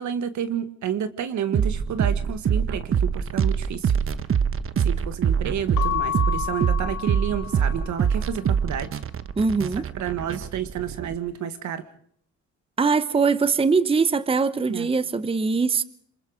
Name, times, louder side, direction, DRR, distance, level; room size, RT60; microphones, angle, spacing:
voice 1, 0.0-3.9 4.8-9.0 10.0-11.8 14.7-14.9, right 9 dB, 70° right, 11 dB, 1.8 m, -30 dB
sound 1, 1.5-11.2, right 7 dB, 45° right, 1.1 m, -24 dB
Keyboard (musical) / Bell, 5.7-8.2, left 11 dB, 80° left, 1.2 m, -30 dB
voice 2, 9.4-9.9 12.8-15.8, right 4 dB, 20° right, 15 dB, 0.8 m, -22 dB
27.5 x 21.0 x 5.1 m, 0.65 s
cardioid pair, 90°, 30 cm